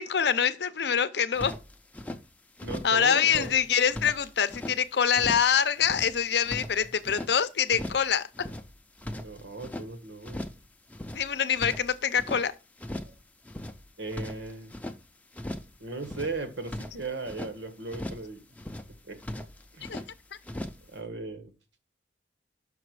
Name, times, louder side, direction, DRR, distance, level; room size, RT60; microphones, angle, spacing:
voice 1, 0.0-1.5 2.8-8.3 11.1-12.5 19.9-20.0, left 7 dB, 65° left, 0.6 m, -25 dB
sound 1, 1.4-2.2 2.6-3.0 3.2-4.8 5.1-5.5 5.8-7.3 7.7-8.1 8.3-9.9 10.2-10.6 10.9-12.4 12.8-13.2 13.4-15.0 15.3-15.7 16.0-17.5 17.9-18.3 18.6-18.9 19.2-20.1 20.4-20.9, left 1 dB, 10° left, 0.5 m, -38 dB
voice 2, 2.6-3.6 9.1-10.5 13.0-13.1 14.0-14.7 15.8-18.5 19.1-19.2 19.7-20.0 20.9-21.5, right 3 dB, 80° right, 1.4 m, -37 dB
6.0 x 5.8 x 4.7 m
head